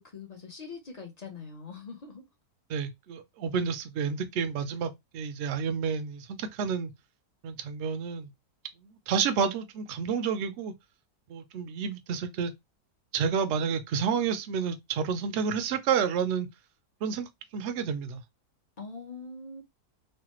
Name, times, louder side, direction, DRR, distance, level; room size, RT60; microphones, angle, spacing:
voice 1, 0.0-2.2 18.8-19.6, left 4 dB, 45° left, 0.5 m, -43 dB
voice 2, 2.7-6.9 7.4-8.3 9.1-10.7 11.3-12.5 13.1-16.5 17.0-18.2, right 6 dB, 65° right, 0.6 m, -30 dB
3.2 x 2.2 x 2.9 m
omnidirectional pair, 1.7 m